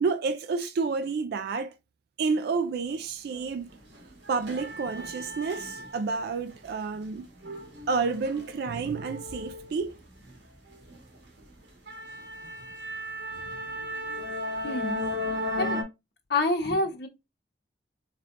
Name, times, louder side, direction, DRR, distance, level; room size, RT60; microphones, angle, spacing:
voice 1, 0.0-1.7 2.2-3.7 4.3-7.3 7.9-9.9, right 4 dB, 60° right, 0.4 m, -29 dB
sound 1, 3.3-3.5 3.8-6.2 6.6-10.4 10.7-11.0 11.4-11.5 11.9-15.8, left 1 dB, 85° right, 1.5 m, -35 dB
voice 2, 14.6-15.0 15.6-15.8 16.3-17.1, left 2 dB, 65° left, 1.0 m, -27 dB
4.1 x 3.3 x 2.5 m
head